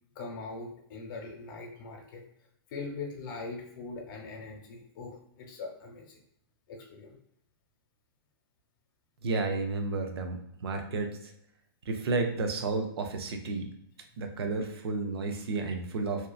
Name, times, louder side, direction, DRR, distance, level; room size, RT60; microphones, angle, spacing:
voice 1, 0.2-2.2 2.7-6.1 6.7-7.2, left 3 dB, 55° left, 2 dB, 0.8 m, -41 dB
voice 2, 9.2-11.1 11.9-13.7 14.2-16.3, right 3 dB, 80° right, 4 dB, 0.6 m, -31 dB
2.7 x 2.4 x 2.3 m, 0.72 s
hypercardioid pair, 145°, 13 cm